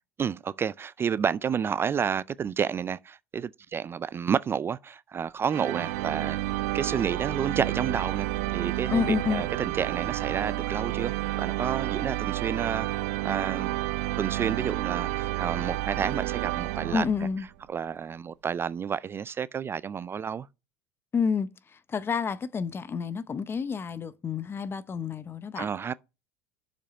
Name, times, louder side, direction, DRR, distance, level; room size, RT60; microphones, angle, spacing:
voice 1, 0.2-6.4 6.7-8.3 8.5-12.9 13.2-13.8 14.2-17.1 17.7-20.5 25.6-25.9, right 7 dB, 25° right, 0.3 m, -30 dB
sound 1, 5.5-17.4, right 16 dB, 70° right, 0.6 m, -30 dB
voice 2, 8.9-9.4 16.9-17.5 21.1-21.5 21.9-25.7, left 6 dB, 25° left, 0.7 m, -29 dB
6.8 x 5.1 x 5.9 m
hypercardioid pair, 85°, 9 cm